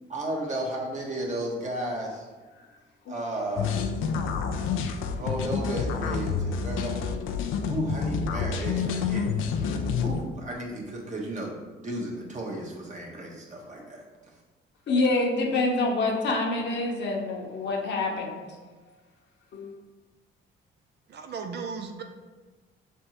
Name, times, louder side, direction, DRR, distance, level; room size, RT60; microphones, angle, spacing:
voice 1, 0.1-2.2 3.1-3.7 5.1-7.0 7.7-9.7 10.0-11.6 11.8-14.0, right 1 dB, 35° right, -2 dB, 1.2 m, -34 dB
sound 1, 3.6-10.2, left 6 dB, 90° left, 0.4 m, -28 dB
voice 2, 14.9-18.5 19.5-19.7, left 2 dB, 65° left, 0 dB, 0.9 m, -26 dB
voice 3, 21.1-22.0, right 5 dB, 55° right, 4 dB, 0.5 m, -36 dB
5.4 x 3.4 x 2.9 m, 1.3 s
cardioid pair, 90°, 20 cm